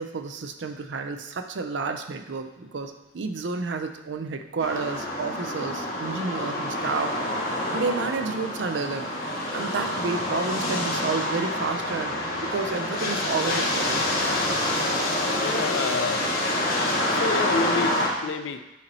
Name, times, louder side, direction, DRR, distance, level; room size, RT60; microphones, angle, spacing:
voice 1, 0.0-7.1 7.7-9.1 9.5-14.1, right 4 dB, 70° right, 7 dB, 0.5 m, -30 dB
sound 1, 4.6-18.1, left 1 dB, 50° left, 1.2 m, -27 dB
voice 2, 15.4-16.2 17.1-18.6, left 4 dB, 85° left, 9 dB, 0.4 m, -29 dB
8.2 x 2.9 x 4.1 m, 1.0 s
head